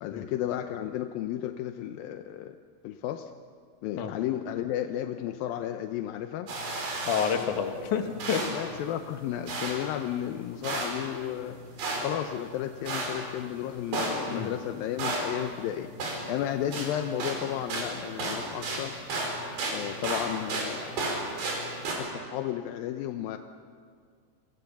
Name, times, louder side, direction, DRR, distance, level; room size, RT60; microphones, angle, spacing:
voice 1, 0.0-2.6 2.8-3.3 3.8-6.5 8.5-11.6 12.0-15.9 16.3-19.0 19.7-21.3 21.9-23.4, left 11 dB, 75° left, 7 dB, 2.2 m, -33 dB
sound 1, 6.5-22.0, right 2 dB, 75° right, 7.0 m, -35 dB
voice 2, 7.1-8.5 14.3-14.5, left 7 dB, 55° left, 5 dB, 2.8 m, -29 dB
30.0 x 24.5 x 7.1 m, 2.1 s
omnidirectional pair, 4.9 m